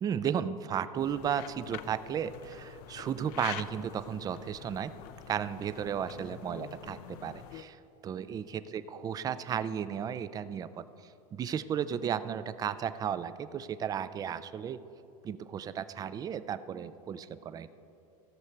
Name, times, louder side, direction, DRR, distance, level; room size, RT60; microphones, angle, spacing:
voice 1, 0.0-4.9 5.3-14.8 15.2-17.7, right 8 dB, 20° right, 14 dB, 0.3 m, -34 dB
sound 1, 1.0-7.6, left 12 dB, 55° left, 0.5 m, -46 dB
15.5 x 6.4 x 4.5 m, 2.8 s
supercardioid pair, 130°, 19 cm